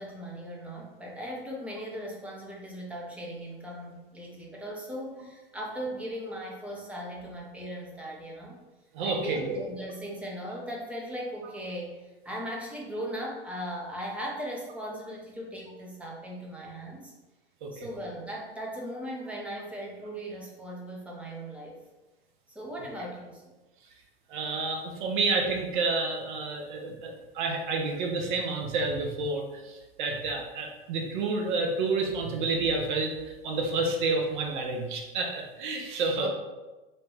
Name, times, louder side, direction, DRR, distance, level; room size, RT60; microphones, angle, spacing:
voice 1, 0.0-8.6 9.0-17.1 17.7-21.8 22.5-23.4 36.2-36.3, equal, 5° right, -3 dB, 0.5 m, -38 dB
voice 2, 8.9-9.6 17.6-17.9 24.3-36.3, right 3 dB, 55° right, 2 dB, 0.6 m, -29 dB
2.7 x 2.2 x 3.2 m, 1.1 s
figure-of-eight pair, 95°, 30 cm